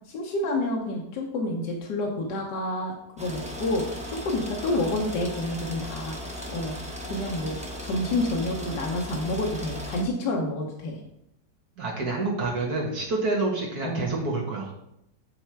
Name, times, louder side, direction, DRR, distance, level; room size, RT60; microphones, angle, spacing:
voice 1, 0.1-6.2 6.5-6.8 7.0-7.6 7.8-11.0 13.8-14.1, left 1 dB, 80° left, 0 dB, 1.5 m, -29 dB
sound 1, 3.2-10.0, equal, 5° right, 0.7 m, -37 dB
voice 2, 11.8-14.7, right 3 dB, 65° right, -2 dB, 2.2 m, -28 dB
9.7 x 3.4 x 4.5 m, 0.80 s
omnidirectional pair, 1.8 m